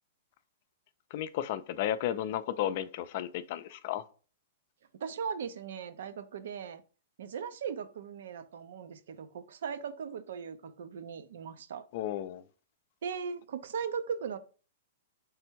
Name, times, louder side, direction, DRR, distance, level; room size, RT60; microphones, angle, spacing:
voice 1, 1.1-4.1 11.9-12.4, left 11 dB, 55° left, 0.4 m, -33 dB
voice 2, 5.0-6.8 7.2-11.8 13.0-14.4, right 6 dB, 75° right, 0.5 m, -38 dB
3.4 x 3.3 x 4.5 m
hypercardioid pair, 130°, 0 cm